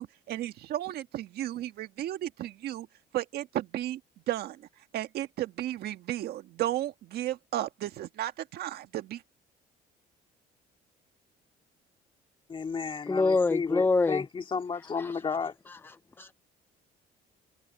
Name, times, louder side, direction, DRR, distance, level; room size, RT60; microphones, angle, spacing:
voice 1, 0.0-2.9 3.1-4.0 4.3-4.7 4.9-9.2, right 13 dB, 70° right, 1.6 m, -34 dB
voice 2, 12.5-15.5, left 5 dB, 30° left, 2.6 m, -33 dB
voice 3, 13.1-14.2 15.0-15.2 15.8-16.3, left 3 dB, 15° left, 0.4 m, -26 dB
cardioid pair, 110°, 17 cm